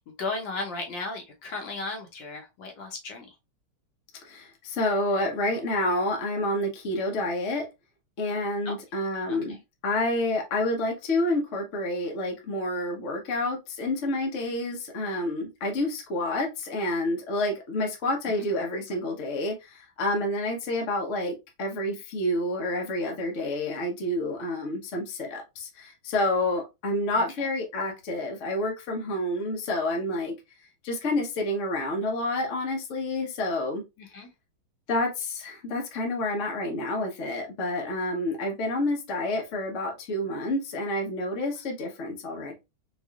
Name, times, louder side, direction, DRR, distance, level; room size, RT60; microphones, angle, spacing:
voice 1, 0.1-3.3 8.6-8.7 9.3-9.6 27.2-27.5 34.0-34.3, left 3 dB, 65° left, 1.5 m, -35 dB
voice 2, 4.2-7.7 8.2-9.6 9.8-30.3 30.8-33.8 34.9-42.6, left 1 dB, 50° left, 0.9 m, -29 dB
4.7 x 2.5 x 2.3 m
omnidirectional pair, 2.3 m